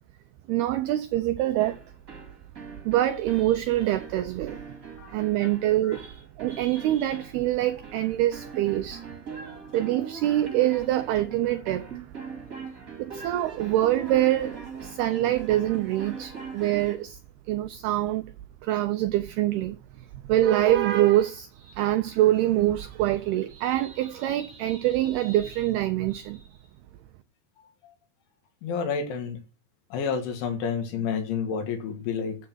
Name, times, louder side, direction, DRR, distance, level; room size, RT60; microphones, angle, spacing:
voice 1, 0.5-1.8 2.8-4.6 5.1-9.0 9.7-12.0 13.0-17.2 17.5-18.3 18.6-26.4, right 14 dB, 90° right, 2.2 m, -25 dB
sound 1, 1.6-17.1, right 5 dB, 30° right, 1.5 m, -41 dB
voice 2, 28.6-29.4 29.9-32.4, left 6 dB, 85° left, 4.3 m, -30 dB
8.5 x 8.2 x 6.1 m
omnidirectional pair, 5.3 m